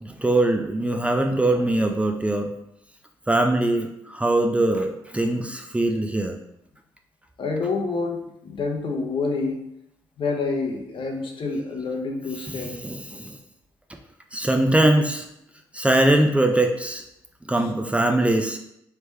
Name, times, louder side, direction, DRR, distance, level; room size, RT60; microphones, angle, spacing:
voice 1, 0.0-2.5 3.3-6.4 12.4-13.4 14.3-15.3 15.7-17.0 17.5-18.6, right 1 dB, 10° right, 3 dB, 0.5 m, -22 dB
voice 2, 7.4-9.6 10.2-12.8, left 3 dB, 55° left, 1 dB, 0.9 m, -27 dB
3.3 x 3.0 x 3.3 m, 0.80 s
hypercardioid pair, 50°, 10 cm